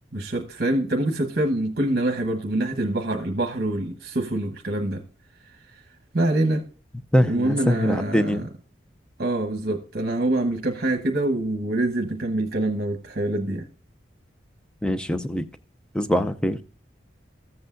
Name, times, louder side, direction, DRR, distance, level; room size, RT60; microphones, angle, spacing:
voice 1, 0.1-5.0 6.1-6.6 7.2-8.4 9.2-13.6, right 1 dB, 55° right, 1.1 m, -25 dB
voice 2, 7.1-8.5 14.8-15.4 15.9-16.6, equal, 5° left, 0.5 m, -23 dB
14.0 x 8.0 x 2.6 m
head